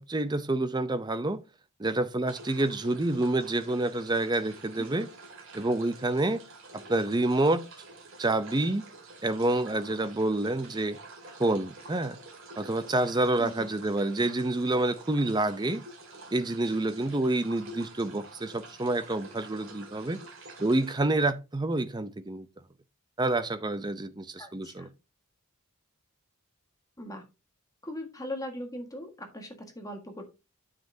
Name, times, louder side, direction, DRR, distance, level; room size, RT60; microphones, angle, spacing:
voice 1, 0.0-1.4 1.8-5.1 5.5-6.4 6.7-7.6 8.2-8.9 9.2-11.0 11.4-12.2 12.6-15.8 16.3-20.2 20.6-22.5 23.2-24.9, right 2 dB, 20° right, 0.6 m, -28 dB
sound 1, 2.3-21.0, right 2 dB, 60° right, 2.1 m, -48 dB
voice 2, 24.4-24.9 27.0-27.2 27.8-30.2, left 1 dB, 15° left, 1.6 m, -39 dB
9.1 x 7.5 x 2.7 m
head